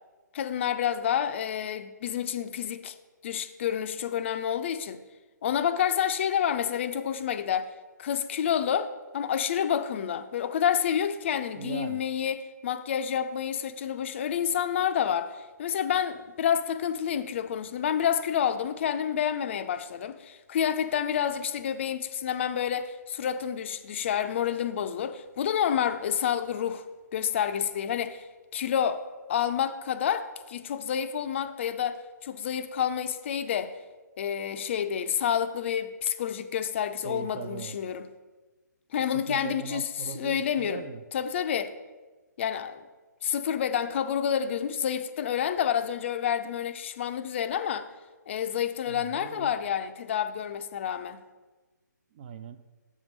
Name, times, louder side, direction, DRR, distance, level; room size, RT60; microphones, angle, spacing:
voice 1, 0.3-3.0 3.2-5.0 5.4-7.7 8.0-26.8 27.1-28.3 28.5-29.0 29.3-33.7 34.2-38.1 38.9-39.8 40.1-40.8 41.1-41.7 42.4-42.8 43.2-47.9 48.3-51.2, left 9 dB, 40° left, 0.4 m, -29 dB
voice 2, 11.6-12.0 37.0-37.8 39.1-41.0 48.9-49.5 52.1-52.6, right 8 dB, 35° right, 0.4 m, -39 dB
7.2 x 3.6 x 6.0 m
figure-of-eight pair, 140°, 10 cm